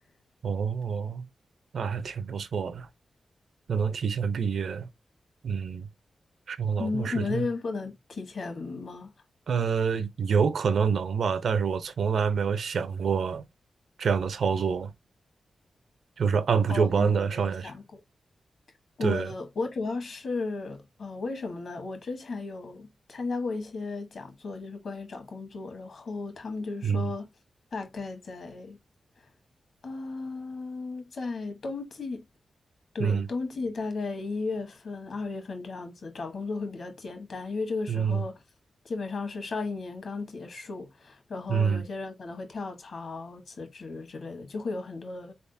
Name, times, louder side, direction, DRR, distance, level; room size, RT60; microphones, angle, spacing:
voice 1, 0.4-1.3 1.7-2.9 3.7-4.9 5.4-5.9 6.5-7.5 9.5-13.4 14.0-14.9 16.2-17.7 19.0-19.3 26.8-27.1 33.0-33.3 37.9-38.2 41.5-41.8, right 6 dB, 75° right, 0.5 m, -27 dB
voice 2, 6.8-9.1 16.7-18.0 19.0-27.3 27.7-28.8 29.8-32.3 32.9-38.4 38.8-45.3, left 3 dB, 55° left, 1.2 m, -35 dB
4.2 x 3.5 x 2.6 m
wide cardioid pair, 170°, 0 cm